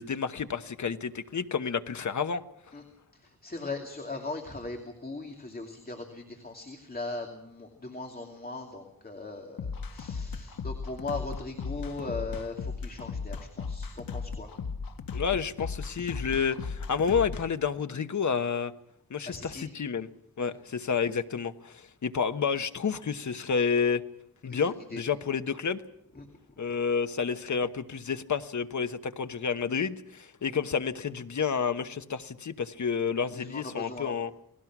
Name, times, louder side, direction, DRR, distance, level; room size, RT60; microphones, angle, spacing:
voice 1, 0.0-2.4 15.1-18.7 19.1-20.1 20.4-24.0 24.4-25.8 26.6-34.3, left 6 dB, 50° left, 10 dB, 1.1 m, -30 dB
voice 2, 3.1-14.5 19.2-19.7 20.4-20.5 24.5-25.0 26.1-26.3 33.3-34.2, left 3 dB, 25° left, 3 dB, 2.5 m, -39 dB
sound 1, 9.6-17.4, left 5 dB, 65° left, 1.6 m, -36 dB
29.5 x 19.5 x 6.1 m, 0.75 s
wide cardioid pair, 130°, 36 cm